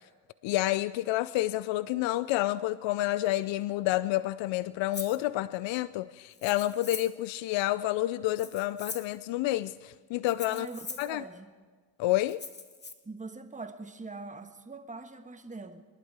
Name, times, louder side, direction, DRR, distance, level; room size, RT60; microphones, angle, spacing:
voice 1, 0.4-10.7 11.0-11.2 12.0-12.4, left 16 dB, 70° left, 17 dB, 0.5 m, -29 dB
Rattle (instrument), 4.9-5.2 6.3-7.2 8.3-9.2 10.3-11.1 12.3-12.9, left 3 dB, 20° left, 1.3 m, -42 dB
voice 2, 10.5-11.5 13.0-15.9, right 3 dB, 15° right, 7 dB, 1.3 m, -43 dB
21.5 x 11.5 x 4.8 m, 1.4 s
supercardioid pair, 45°, 47 cm